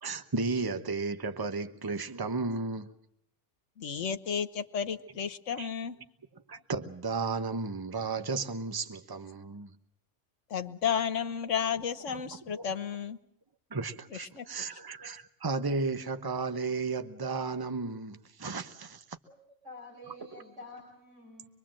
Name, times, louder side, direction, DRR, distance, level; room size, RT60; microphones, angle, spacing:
voice 1, 0.0-2.9 5.6-5.7 6.5-9.7 12.1-12.2 12.5-12.6 13.7-19.0, right 4 dB, 20° right, 1.0 m, -34 dB
voice 2, 3.8-6.0 10.5-13.2 14.1-14.4, left 7 dB, 85° left, 1.5 m, -32 dB
voice 3, 19.6-21.5, left 1 dB, 75° right, 4.9 m, -47 dB
25.5 x 22.5 x 7.6 m
omnidirectional pair, 1.2 m